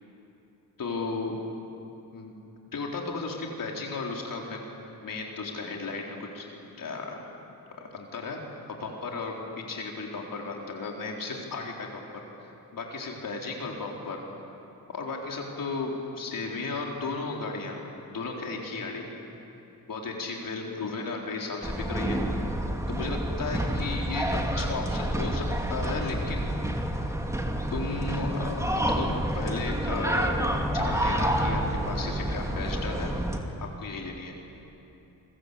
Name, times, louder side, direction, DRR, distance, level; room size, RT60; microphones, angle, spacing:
voice 1, 0.8-1.3 2.1-2.3 2.7-4.6 5.0-7.2 7.8-9.4 9.7-12.0 12.7-14.2 14.9-17.8 18.1-19.1 19.9-22.2 22.9-26.5 27.7-30.4 30.7-33.1 33.8-34.4, left 3 dB, 60° left, 0 dB, 4.1 m, -34 dB
sound 1, 21.6-33.4, right 1 dB, 10° right, 2.6 m, -29 dB
29.0 x 21.5 x 8.5 m, 2.9 s
cardioid pair, 90°, 37 cm